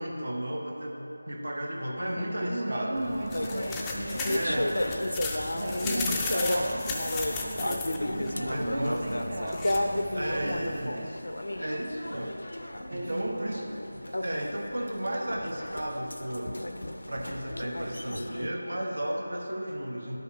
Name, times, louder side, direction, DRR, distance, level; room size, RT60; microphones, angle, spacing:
voice 1, 0.0-3.1 4.3-4.7 5.8-6.3 8.4-9.1 10.1-11.1 11.5-16.6 17.1-20.2, right 1 dB, 75° right, 1 dB, 1.1 m, -34 dB
voice 2, 2.2-5.0 5.5-11.1 12.9-13.6, right 1 dB, 50° right, -2 dB, 0.7 m, -36 dB
sound 1, 3.0-10.9, left 3 dB, 10° left, 0.4 m, -37 dB
sound 2, 3.3-18.5, left 1 dB, 80° left, 0.5 m, -33 dB
12.0 x 5.5 x 2.9 m, 2.9 s
figure-of-eight pair, 165°, 0 cm